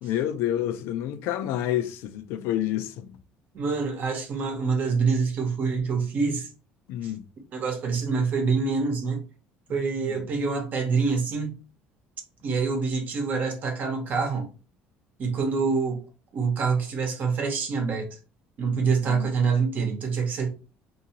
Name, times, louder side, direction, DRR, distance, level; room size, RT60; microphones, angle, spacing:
voice 1, 0.0-3.1 6.9-7.2 10.1-10.2 18.8-19.3, left 12 dB, 80° left, 0.4 m, -29 dB
voice 2, 3.5-6.5 7.0-7.1 7.5-9.2 9.7-11.6 12.4-14.4 15.2-16.0 16.3-18.2 18.6-20.5, right 5 dB, 45° right, 0.9 m, -26 dB
2.7 x 2.6 x 2.8 m
cardioid pair, 135°, 4 cm